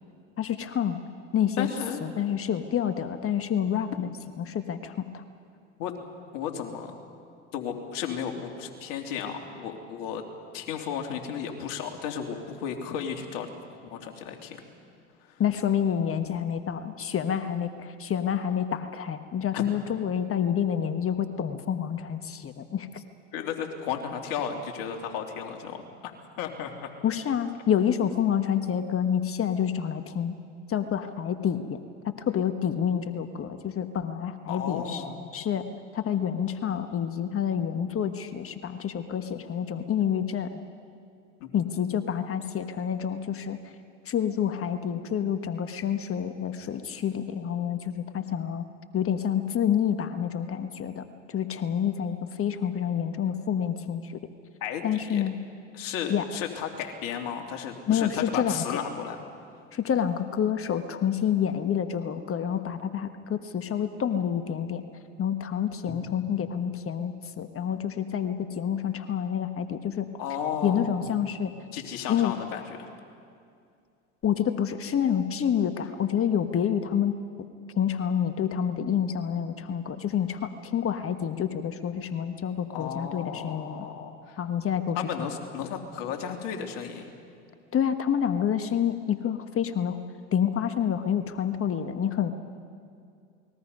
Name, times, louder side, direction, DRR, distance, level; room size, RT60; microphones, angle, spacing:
voice 1, 0.4-1.0 1.3-1.7 2.0-4.1 4.4-5.2 15.4-23.0 27.0-30.3 30.7-31.8 32.2-35.0 35.3-35.6 35.9-40.6 41.5-43.6 44.0-48.6 48.9-54.1 54.8-55.4 56.1-56.2 57.9-58.8 59.7-64.8 65.2-70.1 70.6-71.5 72.1-72.3 74.2-77.2 77.7-83.8 84.4-85.0 87.7-90.0 90.3-92.3, left 8 dB, 35° left, 9 dB, 1.4 m, -28 dB
voice 2, 1.6-2.0 5.8-5.9 6.3-6.9 7.5-10.2 10.5-13.5 13.9-14.6 15.3-15.4 19.5-19.6 23.3-25.8 26.4-26.9 34.5-35.1 41.4-41.5 54.6-55.2 55.7-59.2 65.9-66.0 70.2-71.1 71.7-72.9 82.7-84.4 84.9-87.1, left 8 dB, 65° left, 2 dB, 3.1 m, -34 dB
29.0 x 21.0 x 5.5 m, 2.3 s
hypercardioid pair, 80°, 36 cm